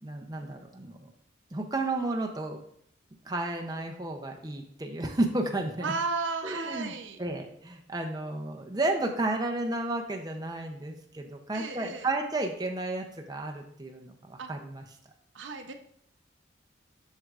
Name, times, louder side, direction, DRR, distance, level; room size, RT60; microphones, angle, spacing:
voice 1, 0.0-1.1 1.5-2.6 3.3-5.9 6.4-6.9 7.2-14.8, right 2 dB, 20° right, 2 dB, 0.6 m, -32 dB
voice 2, 5.8-7.2 11.5-12.1 14.4-14.5 15.3-15.7, right 4 dB, 80° right, 6 dB, 0.7 m, -34 dB
7.8 x 6.5 x 2.4 m, 0.69 s
head